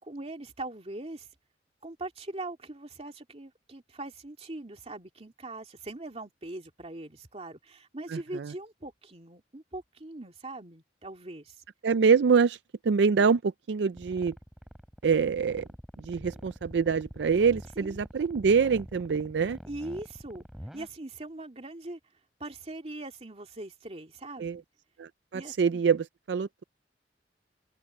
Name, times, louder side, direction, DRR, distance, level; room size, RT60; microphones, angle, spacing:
voice 1, 0.0-1.3 1.8-11.6 17.8-18.0 19.7-20.5 20.7-22.0 22.4-24.6 25.3-25.8, right 2 dB, 35° right, 2.4 m, -41 dB
voice 2, 8.1-8.5 11.8-12.6 12.8-14.3 15.0-15.7 16.0-19.6 24.4-24.6 25.0-26.6, right 5 dB, 75° right, 0.4 m, -25 dB
sound 1, 14.0-20.9, equal, ahead, 6.6 m, -45 dB
open air
head